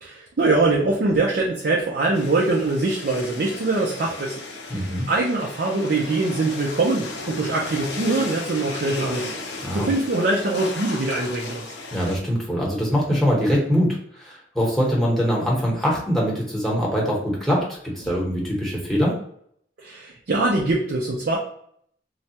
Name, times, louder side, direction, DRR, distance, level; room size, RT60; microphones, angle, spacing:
voice 1, 0.0-4.3 4.7-9.3 9.7-11.6 19.8-21.4, right 2 dB, 60° right, -2 dB, 0.5 m, -23 dB
sound 1, 2.1-12.2, left 3 dB, 85° left, 0.7 m, -35 dB
voice 2, 4.7-5.1 9.6-9.9 11.9-19.2, equal, ahead, -3 dB, 0.9 m, -23 dB
3.2 x 2.3 x 2.8 m, 0.65 s
head